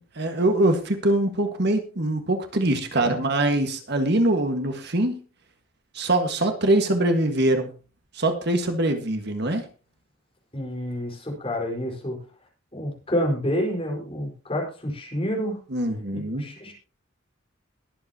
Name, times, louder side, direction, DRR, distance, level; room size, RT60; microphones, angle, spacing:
voice 1, 0.1-5.2 5.9-7.7 8.1-9.6 15.7-16.4, right 1 dB, 55° right, 6 dB, 1.7 m, -23 dB
voice 2, 10.5-12.2 12.7-15.6 16.1-16.7, equal, 30° left, -1 dB, 4.7 m, -28 dB
22.0 x 7.9 x 2.9 m, 0.34 s
head